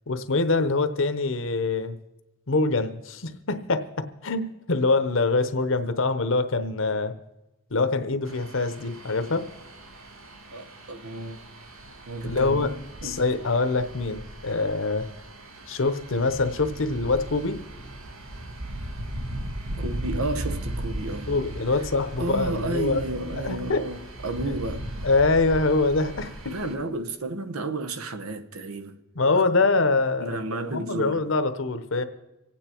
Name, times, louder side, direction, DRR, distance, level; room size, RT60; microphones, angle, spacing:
voice 1, 0.1-2.0 2.5-7.1 7.7-9.5 12.2-12.7 13.0-15.1 15.7-17.6 21.3-23.0 23.4-23.9 24.5-24.6 25.0-26.3 29.2-30.4 30.7-32.0, left 3 dB, 65° left, 0.9 m, -24 dB
sound 1, 8.2-26.7, right 1 dB, 75° right, 1.5 m, -37 dB
voice 2, 10.5-11.4 12.1-12.8 13.0-13.2 19.8-21.4 22.2-24.9 26.4-29.0 30.2-31.3, right 2 dB, 90° right, 1.0 m, -32 dB
25.5 x 9.0 x 4.5 m
head